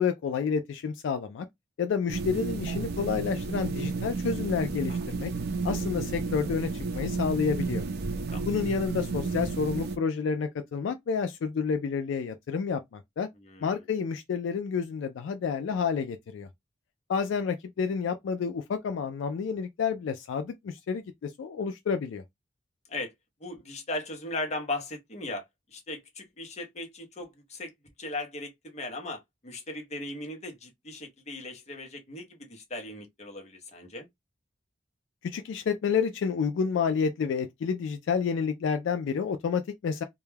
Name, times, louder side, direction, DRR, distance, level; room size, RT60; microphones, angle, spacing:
voice 1, 0.0-1.5 1.8-5.3 5.6-7.8 8.5-13.3 13.6-16.5 17.1-22.2 35.2-40.0, left 6 dB, 70° left, 0.3 m, -29 dB
sound 1, 2.1-10.0, right 4 dB, 55° right, 0.4 m, -32 dB
voice 2, 13.4-13.8 22.9-23.1 23.4-25.4 25.7-27.7 28.0-34.1, left 2 dB, 35° left, 0.8 m, -38 dB
2.2 x 2.1 x 3.1 m
head